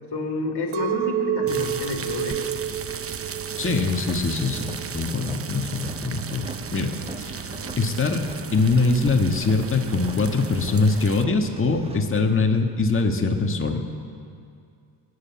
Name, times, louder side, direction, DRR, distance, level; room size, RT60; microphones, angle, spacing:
voice 1, 0.1-2.4 7.5-7.8, left 3 dB, 55° left, 2 dB, 2.9 m, -29 dB
Chink clink, 0.7-5.0 5.5-6.0, right 11 dB, 80° right, 0.9 m, -30 dB
sound 1, 1.5-11.2, right 6 dB, 30° right, 0.8 m, -35 dB
sound 2, 3.5-12.1, right 2 dB, 10° right, 1.4 m, -43 dB
voice 2, 3.6-7.5 7.8-8.2 8.5-13.8, left 3 dB, 25° left, 2 dB, 1.7 m, -23 dB
20.0 x 9.7 x 7.2 m, 2.4 s
supercardioid pair, 65°, 48 cm